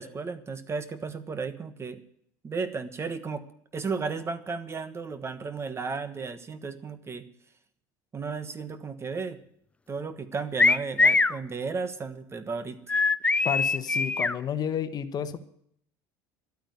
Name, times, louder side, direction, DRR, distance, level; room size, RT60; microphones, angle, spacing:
voice 1, 0.0-2.0 2.4-3.4 3.7-7.3 8.1-9.4 9.9-12.8, right 4 dB, 25° right, 12 dB, 1.3 m, -34 dB
sound 1, 10.6-11.4 12.9-14.4, left 3 dB, 10° left, 0.5 m, -22 dB
voice 2, 13.4-15.4, left 8 dB, 40° left, 11 dB, 1.2 m, -31 dB
12.0 x 8.8 x 9.6 m, 0.68 s
supercardioid pair, 100°, 10 cm